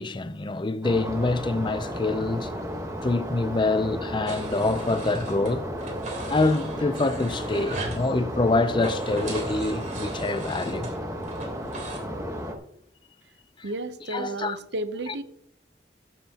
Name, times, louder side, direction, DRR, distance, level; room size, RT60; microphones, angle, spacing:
voice 1, 0.0-2.5 3.0-5.6 6.3-10.9 14.1-14.6, left 2 dB, 25° left, 0.5 m, -26 dB
sound 1, 0.8-12.5, equal, 20° right, 1.2 m, -34 dB
sound 2, 4.3-5.5 5.8-8.0 8.7-12.0, right 2 dB, 45° right, 3.2 m, -37 dB
voice 2, 13.6-15.2, right 2 dB, 75° right, 0.7 m, -32 dB
15.0 x 7.4 x 2.9 m
head